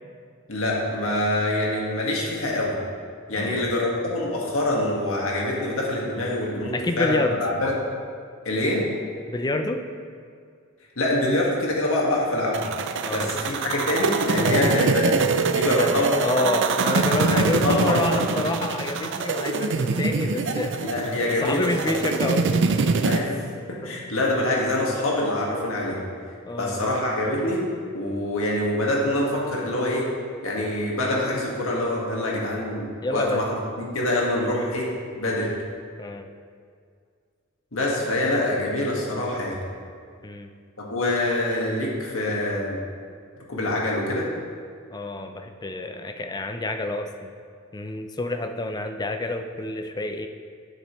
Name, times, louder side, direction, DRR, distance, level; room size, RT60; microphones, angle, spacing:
voice 1, 0.5-2.8 3.3-7.7 8.5-8.9 11.0-12.6 13.1-15.2 15.5-16.5 17.3-18.4 20.8-22.0 23.0-23.4 23.7-26.0 26.6-27.7 27.9-30.1 30.4-34.9 35.2-35.5 37.7-39.6 40.8-42.8 43.5-44.3, left 1 dB, 75° left, -3 dB, 1.7 m, -25 dB
voice 2, 3.3-3.7 6.7-7.4 9.3-9.8 13.0-13.3 15.7-20.8 21.2-22.6 25.9-26.1 26.4-26.9 33.0-33.4 34.4-34.5 36.0-36.3 40.2-40.5 44.9-47.3 47.7-50.3, left 2 dB, 20° left, 6 dB, 0.5 m, -28 dB
sound 1, 12.5-23.2, right 4 dB, 60° right, 0.5 m, -24 dB
10.0 x 7.4 x 3.1 m, 2.1 s
head